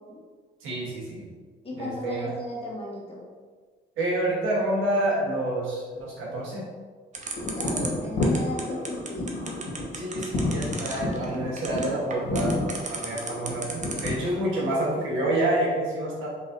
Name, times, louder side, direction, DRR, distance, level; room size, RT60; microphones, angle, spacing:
voice 1, 0.6-1.3 1.8-2.4 4.0-6.6 9.9-12.6 12.9-16.3, right 1 dB, 85° right, -4 dB, 1.3 m, -28 dB
voice 2, 1.6-3.2 7.5-9.3, left 1 dB, 30° left, -4 dB, 1.3 m, -35 dB
sound 1, 7.1-14.3, right 4 dB, 40° right, 0.7 m, -34 dB
sound 2, 7.3-14.4, left 2 dB, 65° left, 1.4 m, -30 dB
4.2 x 3.8 x 2.6 m, 1.5 s
cardioid pair, 90°, 20 cm